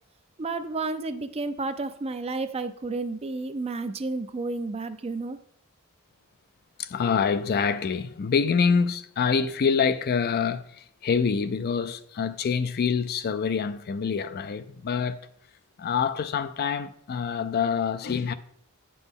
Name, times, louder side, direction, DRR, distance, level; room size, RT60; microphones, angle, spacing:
voice 1, 0.4-5.4, right 3 dB, 30° right, 0.4 m, -31 dB
voice 2, 6.8-15.2 15.8-18.3, left 6 dB, 45° left, 0.4 m, -26 dB
8.8 x 6.1 x 3.6 m
head